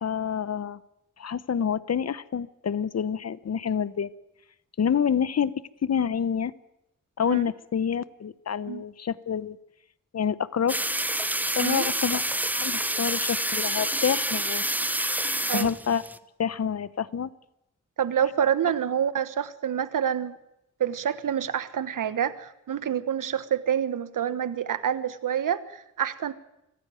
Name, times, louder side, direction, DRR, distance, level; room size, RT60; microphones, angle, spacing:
voice 1, 0.0-0.8 1.2-4.1 4.8-5.5 5.8-6.5 7.2-9.6 10.1-10.8 11.6-12.2 12.5-14.6 15.5-16.0 16.4-17.3, left 7 dB, 55° left, 17 dB, 0.9 m, -27 dB
sound 1, 10.7-16.2, right 1 dB, 5° right, 0.9 m, -28 dB
voice 2, 18.0-20.4 20.8-26.3, right 9 dB, 80° right, 14 dB, 1.3 m, -27 dB
24.5 x 15.0 x 9.2 m, 0.85 s
wide cardioid pair, 100°, 32 cm